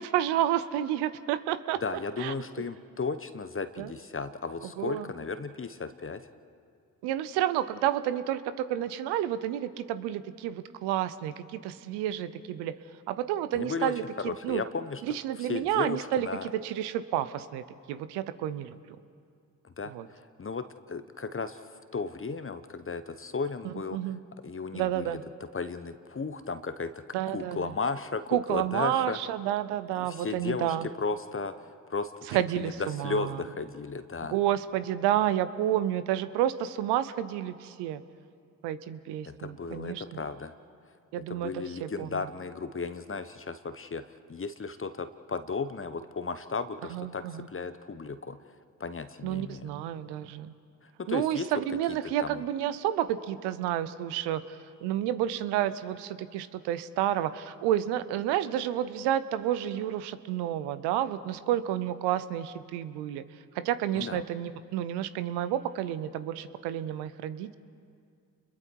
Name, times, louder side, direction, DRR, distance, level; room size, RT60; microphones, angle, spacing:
voice 1, 0.0-2.3 3.8-3.9 4.8-5.1 7.0-12.8 13.1-14.6 15.0-18.8 19.8-20.1 23.6-24.2 24.7-25.2 27.1-27.8 28.3-30.9 32.3-33.4 34.3-38.0 38.6-40.2 41.1-42.2 46.9-47.5 49.2-50.5 51.1-63.2 63.5-67.5, right 11 dB, 85° right, 14 dB, 0.8 m, -30 dB
voice 2, 1.8-6.2 13.5-13.9 14.2-15.0 15.5-16.5 19.6-24.0 24.4-25.2 25.5-27.0 27.3-29.2 30.1-34.4 39.3-40.5 41.3-44.0 44.3-47.2 47.5-48.4 48.8-49.7 50.8-51.5 52.2-52.4 63.9-64.2, left 4 dB, 30° left, 11 dB, 1.1 m, -35 dB
29.5 x 21.5 x 4.7 m, 2.3 s
hypercardioid pair, 45°, 39 cm